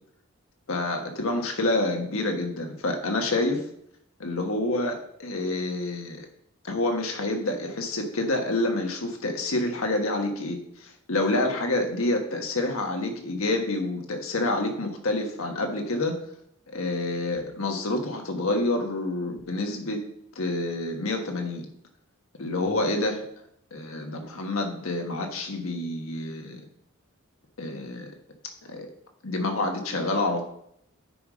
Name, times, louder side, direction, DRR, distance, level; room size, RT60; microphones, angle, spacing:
voice 1, 0.7-3.6 4.2-6.3 6.6-16.1 16.7-20.0 20.3-21.7 22.4-23.2 23.7-26.6 27.6-28.1 28.7-28.9 29.2-30.4, left 2 dB, 80° left, 3 dB, 1.5 m, -28 dB
9.5 x 5.0 x 5.2 m, 0.72 s
head